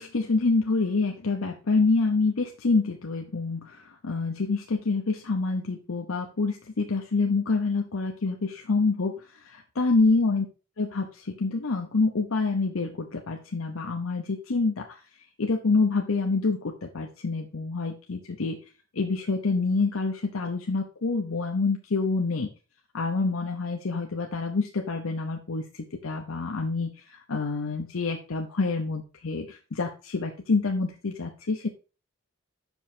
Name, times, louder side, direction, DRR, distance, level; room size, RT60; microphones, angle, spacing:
voice 1, 0.0-9.1 9.4-10.4 10.8-14.9 15.4-18.6 19.0-22.5 22.9-25.6 26.0-31.7, left 3 dB, 80° left, 2 dB, 0.8 m, -27 dB
6.1 x 5.4 x 4.3 m, 0.34 s
head